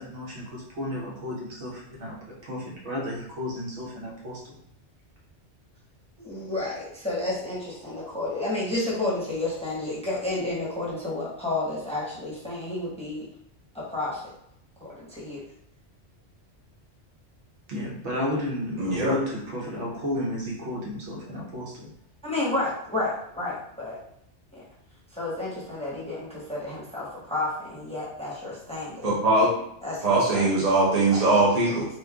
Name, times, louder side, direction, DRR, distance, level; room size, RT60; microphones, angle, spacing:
voice 1, 0.0-4.6 17.7-21.9, left 1 dB, 70° right, -4 dB, 1.3 m, -32 dB
voice 2, 6.2-13.3 13.7-14.2 14.8-15.4 22.2-24.0 24.5-24.6 25.1-29.1 29.8-30.5 31.1-31.8, left 2 dB, 5° left, -6 dB, 0.9 m, -31 dB
voice 3, 18.8-19.1 29.0-29.5 30.0-31.9, right 2 dB, 40° right, -5 dB, 0.8 m, -21 dB
3.1 x 2.6 x 3.5 m, 0.72 s
omnidirectional pair, 1.2 m